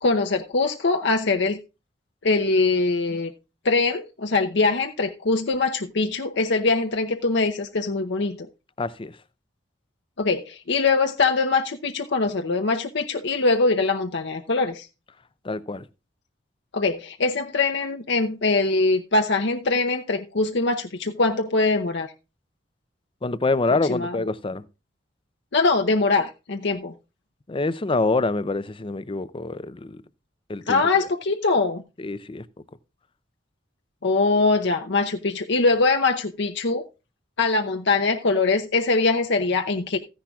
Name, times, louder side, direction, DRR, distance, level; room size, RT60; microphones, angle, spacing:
voice 1, 0.0-1.6 2.2-3.3 3.6-8.4 10.2-14.9 16.7-22.1 23.9-24.2 25.5-26.9 30.7-31.8 34.0-36.8 37.4-40.0, left 3 dB, 65° left, 0.8 m, -22 dB
voice 2, 8.8-9.2 15.4-15.8 23.2-24.6 27.5-30.0 30.5-31.1 32.0-32.5, left 3 dB, 30° left, 0.6 m, -26 dB
14.5 x 10.0 x 2.4 m
head